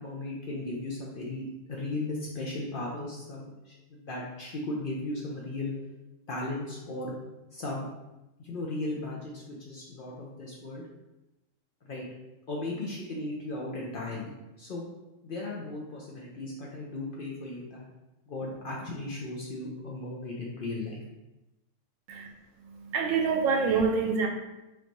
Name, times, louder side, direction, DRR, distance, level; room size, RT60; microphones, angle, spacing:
voice 1, 0.0-5.7 6.3-7.1 7.5-7.9 8.4-10.8 11.8-12.0 12.5-14.8 15.2-17.9 18.3-21.0, left 2 dB, 60° left, -3 dB, 0.6 m, -36 dB
voice 2, 22.6-24.3, right 5 dB, 85° right, 2 dB, 1.0 m, -26 dB
3.4 x 2.6 x 2.9 m, 0.98 s
omnidirectional pair, 1.3 m